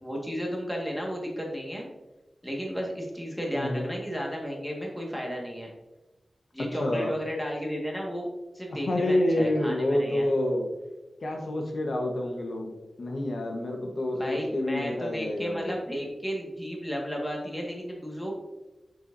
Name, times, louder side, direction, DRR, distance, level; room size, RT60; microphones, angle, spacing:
voice 1, 0.0-1.9 2.4-5.7 6.5-8.3 8.5-10.3 14.1-18.3, equal, 5° left, -1 dB, 1.7 m, -33 dB
voice 2, 3.5-3.8 6.8-7.1 8.7-10.7 11.2-12.7 13.0-15.7, left 1 dB, 75° left, 1 dB, 1.2 m, -28 dB
7.2 x 5.9 x 2.7 m, 1.1 s
wide cardioid pair, 105°, 0 cm